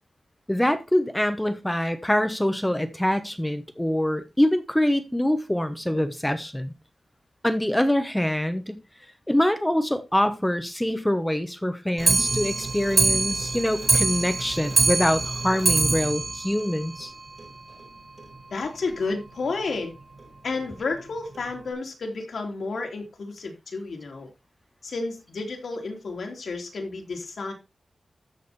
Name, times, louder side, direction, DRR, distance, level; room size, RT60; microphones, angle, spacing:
voice 1, 0.5-6.7 7.4-8.8 9.3-17.1, left 1 dB, 5° left, 1.0 m, -24 dB
Clock, 12.0-17.5 17.8-17.9 18.2-18.3 18.6-18.7 19.0-19.1 19.8-19.9 20.6-20.7 21.3-21.4, right 3 dB, 45° right, 3.3 m, -24 dB
voice 2, 18.5-19.9 20.4-24.3 24.8-27.5, left 3 dB, 75° left, 3.1 m, -31 dB
13.5 x 5.2 x 4.1 m
wide cardioid pair, 135°, 0 cm